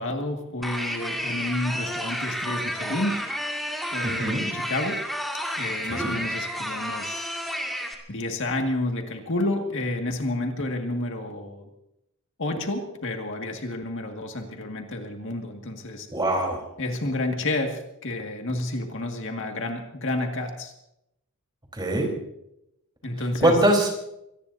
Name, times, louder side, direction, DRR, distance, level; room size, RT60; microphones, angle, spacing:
voice 1, 0.0-3.2 3.9-5.0 5.6-7.3 8.1-11.7 12.4-16.1 16.8-20.7 23.0-23.6, left 2 dB, 60° left, 3 dB, 2.0 m, -30 dB
sound 1, 0.6-7.9, equal, ahead, 2.2 m, -31 dB
voice 2, 4.0-4.5 5.9-6.1 16.1-16.6 21.7-22.1 23.4-24.1, right 1 dB, 20° right, 1 dB, 3.9 m, -23 dB
24.5 x 19.0 x 2.7 m, 0.82 s
head